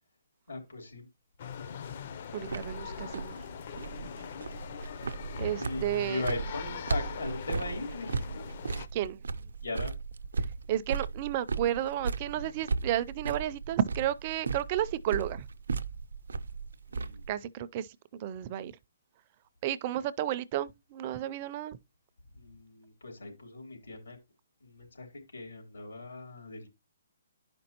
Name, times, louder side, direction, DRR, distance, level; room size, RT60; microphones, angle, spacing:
voice 1, 0.5-1.1 4.7-8.4 9.6-9.9 16.9-17.2 22.4-24.2 24.6-26.7, left 3 dB, 90° left, 3.4 m, -39 dB
sound 1, 1.4-8.9, left 7 dB, 45° left, 0.5 m, -42 dB
voice 2, 2.3-3.3 5.4-6.2 8.9-9.2 10.7-15.4 17.3-18.7 19.6-21.8, right 12 dB, 30° right, 0.4 m, -32 dB
sound 2, 2.4-17.3, right 4 dB, 85° right, 0.6 m, -36 dB
11.0 x 5.2 x 2.9 m
hypercardioid pair, 160°, 0 cm